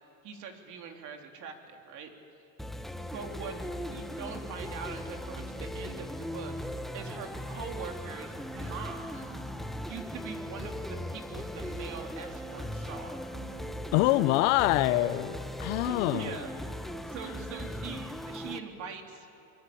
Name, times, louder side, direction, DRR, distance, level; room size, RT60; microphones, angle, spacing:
voice 1, 0.2-2.1 2.4-2.5 3.0-6.5 6.9-9.3 9.8-13.1 15.8-16.5 17.1-19.3, right 6 dB, 50° right, 4 dB, 3.5 m, -42 dB
sound 1, 2.6-18.6, equal, ahead, 1.1 m, -38 dB
voice 2, 13.9-16.3, left 17 dB, 80° left, 15 dB, 1.0 m, -25 dB
26.5 x 22.5 x 8.7 m, 2.5 s
cardioid pair, 130°, 37 cm